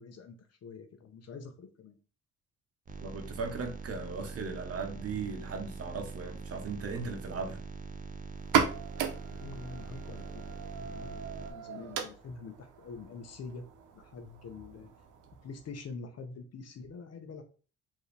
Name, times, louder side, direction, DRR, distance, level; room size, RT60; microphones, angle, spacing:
voice 1, 0.0-2.0 9.3-13.6 13.9-14.9 15.4-17.4, left 4 dB, 55° left, 7 dB, 0.9 m, -46 dB
sound 1, 2.8-11.5, right 4 dB, 25° right, 0.7 m, -43 dB
voice 2, 3.0-7.6, right 4 dB, 50° right, 4 dB, 1.1 m, -37 dB
sound 2, 8.4-15.8, right 7 dB, 85° right, 0.8 m, -36 dB
4.7 x 2.9 x 3.3 m, 0.36 s
cardioid pair, 90°, 30 cm